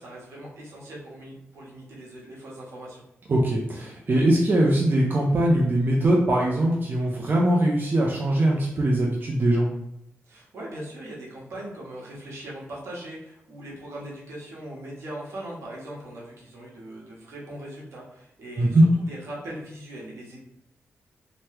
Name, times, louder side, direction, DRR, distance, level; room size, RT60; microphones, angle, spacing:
voice 1, 0.0-3.0 10.2-20.4, right 1 dB, 75° right, -5 dB, 1.0 m, -40 dB
voice 2, 3.3-9.7 18.6-18.9, right 1 dB, 45° right, -2 dB, 0.5 m, -21 dB
2.9 x 2.1 x 3.2 m, 0.77 s
cardioid pair, 65°, 5 cm